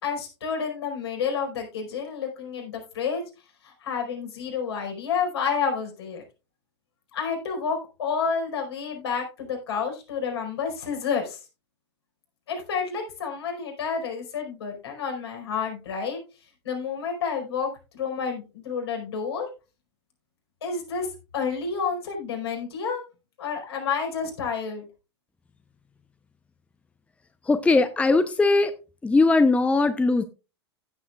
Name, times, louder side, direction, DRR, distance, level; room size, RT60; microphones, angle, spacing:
voice 1, 0.0-3.2 3.6-6.2 7.1-11.4 12.5-16.2 16.6-19.5 20.6-21.1 21.3-23.0 23.4-24.9, left 6 dB, 65° left, 2 dB, 4.8 m, -29 dB
voice 2, 27.5-28.7 29.0-30.2, left 3 dB, 10° left, 10 dB, 0.7 m, -20 dB
15.5 x 7.7 x 2.4 m, 0.30 s
figure-of-eight pair, 100°, 14 cm